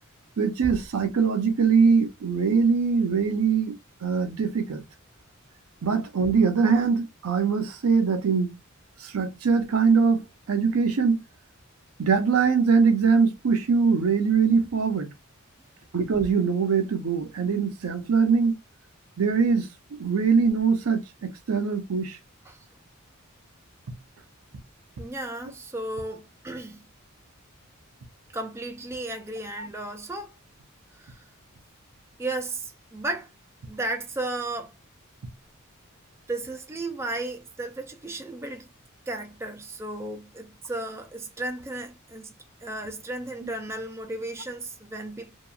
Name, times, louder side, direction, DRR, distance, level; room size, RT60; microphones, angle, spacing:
voice 1, 0.4-3.8 4.0-4.8 5.8-8.6 9.0-11.2 12.0-15.1 15.9-18.6 19.2-19.7 20.0-22.2, right 5 dB, 80° right, 0.5 m, -22 dB
voice 2, 25.0-26.9 28.3-30.4 30.9-31.2 32.2-33.3 33.7-34.7 36.3-38.7 39.1-42.3 42.6-45.4, right 2 dB, 10° right, 0.3 m, -34 dB
2.9 x 2.3 x 2.3 m
head